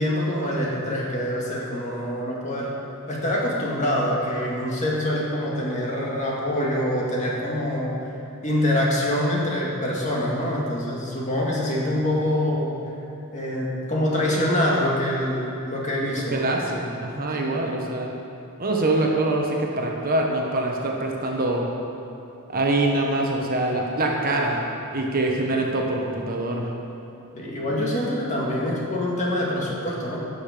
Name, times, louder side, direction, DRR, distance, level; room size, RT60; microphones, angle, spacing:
voice 1, 0.0-2.8 3.1-8.1 8.4-12.7 13.3-16.4 17.4-17.7 27.3-30.2, left 1 dB, 35° left, -4 dB, 2.0 m, -25 dB
voice 2, 16.3-18.1 18.6-21.6 22.5-24.6 24.9-26.7, right 2 dB, 40° right, 0 dB, 1.2 m, -24 dB
16.5 x 6.7 x 5.1 m, 2.9 s
head